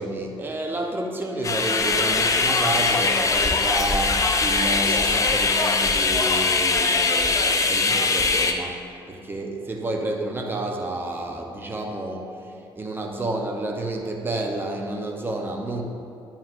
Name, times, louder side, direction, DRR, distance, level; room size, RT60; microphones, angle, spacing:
voice 1, 0.0-8.8 9.1-15.8, right 2 dB, 15° right, 2 dB, 0.8 m, -30 dB
sound 1, 1.4-8.5, left 4 dB, 25° left, 0.6 m, -21 dB
9.4 x 7.1 x 2.6 m, 2.6 s
figure-of-eight pair, 45°, 13 cm